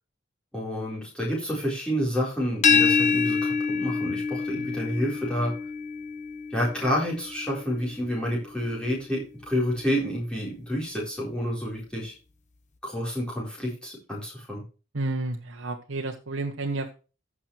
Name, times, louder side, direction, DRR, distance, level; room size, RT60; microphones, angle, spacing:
voice 1, 0.5-5.5 6.5-12.1 12.8-14.6, equal, 5° left, -5 dB, 4.2 m, -29 dB
sound 1, 2.6-8.4, left 5 dB, 35° left, 1.2 m, -26 dB
voice 2, 14.9-16.9, right 2 dB, 80° right, 2 dB, 1.0 m, -31 dB
15.0 x 6.1 x 3.2 m, 0.33 s
head